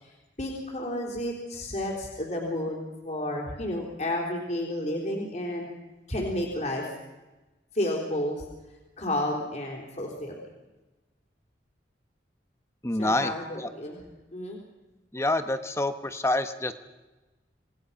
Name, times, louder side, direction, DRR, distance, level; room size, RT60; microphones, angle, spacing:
voice 1, 0.4-5.7 6.1-6.8 7.7-8.5 9.0-10.4 13.0-14.0 14.3-14.6, left 1 dB, 40° left, 0 dB, 3.9 m, -31 dB
voice 2, 12.8-13.7 15.1-16.7, left 1 dB, 15° left, 9 dB, 1.2 m, -27 dB
27.5 x 20.0 x 5.8 m, 1.1 s
head